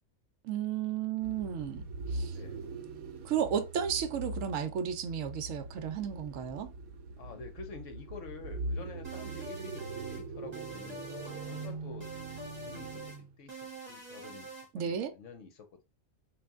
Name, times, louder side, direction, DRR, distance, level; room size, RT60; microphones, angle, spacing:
voice 1, 0.4-1.8 2.1-2.4 3.2-6.7 14.7-15.1, right 8 dB, 70° right, 1.0 m, -33 dB
sound 1, 1.2-13.4, right 2 dB, 85° right, 1.1 m, -41 dB
voice 2, 2.3-2.6 7.2-12.1 12.6-15.8, left 5 dB, 65° left, 1.1 m, -49 dB
sound 2, 9.0-10.2 10.5-11.7 12.0-13.2 13.5-14.7, right 2 dB, 30° right, 1.2 m, -45 dB
3.2 x 2.6 x 3.5 m
omnidirectional pair, 1.5 m